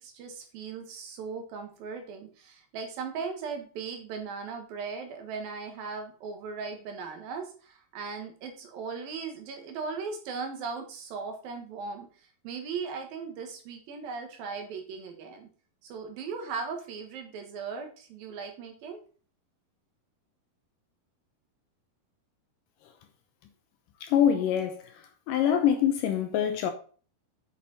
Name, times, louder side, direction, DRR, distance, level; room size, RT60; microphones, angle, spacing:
voice 1, 0.0-15.5 15.8-19.0, right 5 dB, 75° right, 3.2 m, -38 dB
voice 2, 24.0-26.7, left 9 dB, 75° left, 2.3 m, -25 dB
8.5 x 6.0 x 4.2 m
omnidirectional pair, 4.4 m